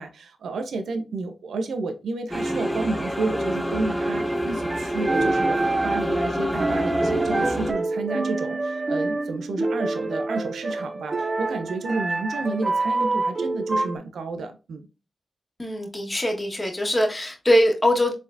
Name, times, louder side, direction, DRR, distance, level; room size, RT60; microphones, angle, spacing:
voice 1, 0.0-14.9, right 3 dB, 85° right, 0.6 m, -31 dB
sound 1, 2.3-7.7, equal, 5° left, 0.8 m, -27 dB
sound 2, 4.5-14.0, right 2 dB, 45° right, 0.4 m, -26 dB
voice 2, 15.6-18.1, equal, 25° left, 1.5 m, -22 dB
4.3 x 3.5 x 2.6 m
supercardioid pair, 40°, 0 cm